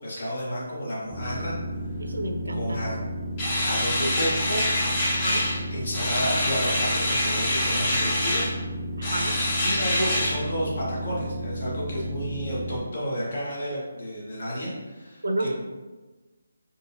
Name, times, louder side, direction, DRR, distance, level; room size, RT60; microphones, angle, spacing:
voice 1, 0.0-1.5 2.5-3.0 3.6-4.6 5.7-8.5 9.6-15.5, equal, 50° left, -6 dB, 1.5 m, -31 dB
sound 1, 1.1-12.8, equal, 5° left, 0.4 m, -33 dB
voice 2, 2.0-2.8 5.1-5.5 9.0-9.4 15.2-15.5, right 1 dB, 75° right, 4 dB, 0.5 m, -30 dB
sound 2, 3.4-5.6 5.9-8.5 9.0-10.3, left 1 dB, 25° left, 0.9 m, -26 dB
3.8 x 2.6 x 2.8 m, 1.2 s
figure-of-eight pair, 150°, 0 cm